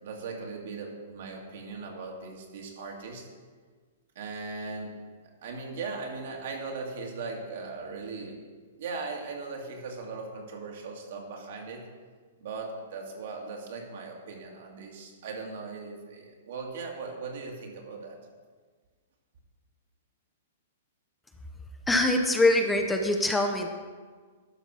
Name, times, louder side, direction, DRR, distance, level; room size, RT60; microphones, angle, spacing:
voice 1, 0.0-3.3 4.2-4.9 5.4-8.4 8.8-11.8 12.4-18.2, right 4 dB, 65° right, 0 dB, 2.3 m, -38 dB
voice 2, 21.9-23.7, left 2 dB, 10° left, 3 dB, 0.9 m, -23 dB
12.0 x 5.2 x 6.2 m, 1.5 s
hypercardioid pair, 120°, 0 cm